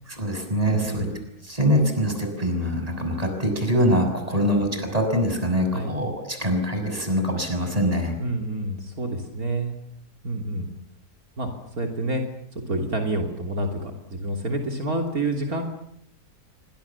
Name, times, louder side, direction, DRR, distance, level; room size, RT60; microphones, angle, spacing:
voice 1, 0.1-1.1 1.5-8.1, equal, 25° right, 5 dB, 6.5 m, -24 dB
voice 2, 0.7-1.1 4.3-4.4 5.7-5.9 8.2-9.7 10.2-10.7 11.4-11.5 11.8-12.2 12.7-15.6, right 1 dB, 70° right, 3 dB, 3.5 m, -28 dB
28.5 x 25.0 x 7.2 m, 0.72 s
omnidirectional pair, 1.6 m